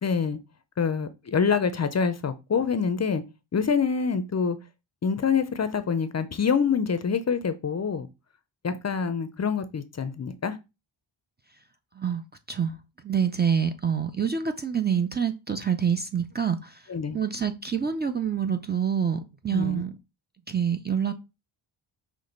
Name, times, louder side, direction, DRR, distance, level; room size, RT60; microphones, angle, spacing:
voice 1, 0.0-0.4 0.8-3.2 3.5-4.6 5.0-8.1 8.6-10.6 16.9-17.2 19.5-19.8, left 6 dB, 35° left, 0.5 m, -26 dB
voice 2, 13.0-20.0 20.5-21.1, right 7 dB, 20° right, 0.4 m, -27 dB
6.0 x 3.1 x 5.1 m
wide cardioid pair, 175°, 48 cm